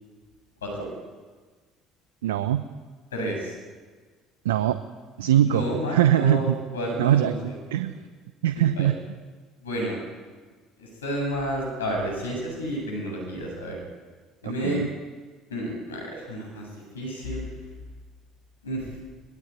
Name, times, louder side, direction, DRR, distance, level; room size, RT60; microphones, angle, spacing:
voice 1, 2.2-2.6 4.4-4.8 5.2-5.6 5.9-6.6 7.0-7.9 8.4-9.0 14.4-14.9, right 11 dB, 80° right, 11 dB, 0.8 m, -22 dB
voice 2, 3.1-3.5 5.4-7.6 8.5-8.9 9.6-10.0 10.8-13.8 14.4-14.8 15.5-16.7 16.9-17.4 18.6-18.9, equal, 85° left, 1 dB, 7.7 m, -31 dB
22.0 x 21.0 x 9.7 m, 1.4 s
hypercardioid pair, 60°, 0 cm